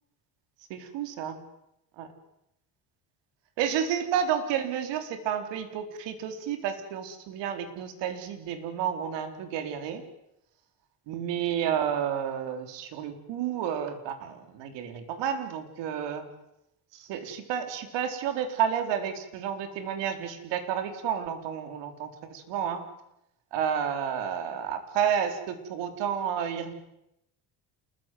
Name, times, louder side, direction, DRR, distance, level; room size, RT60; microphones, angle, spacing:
voice 1, 0.7-1.4 2.0-2.1 3.6-10.0 11.1-16.2 16.9-22.9 23.5-26.7, right 8 dB, 85° right, 8 dB, 4.3 m, -31 dB
28.5 x 21.5 x 9.5 m, 0.85 s
cardioid pair, 130°, 42 cm